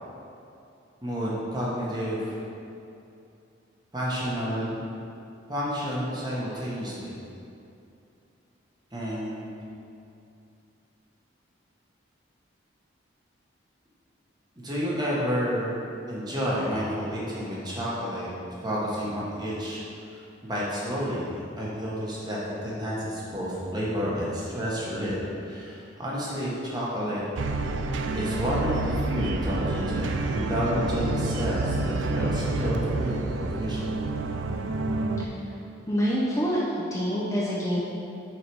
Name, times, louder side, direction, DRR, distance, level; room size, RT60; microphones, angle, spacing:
voice 1, 1.0-2.3 3.9-5.0 5.5-7.2 8.9-9.5 14.6-15.8 16.1-18.3 18.6-25.1 25.4-27.2 28.1-33.9, equal, 20° right, -6 dB, 1.2 m, -30 dB
sound 1, 27.4-35.3, right 2 dB, 70° right, 0.4 m, -28 dB
voice 2, 35.9-36.6 36.9-37.8, equal, 15° left, -7 dB, 0.7 m, -26 dB
6.3 x 4.9 x 4.7 m, 2.7 s
head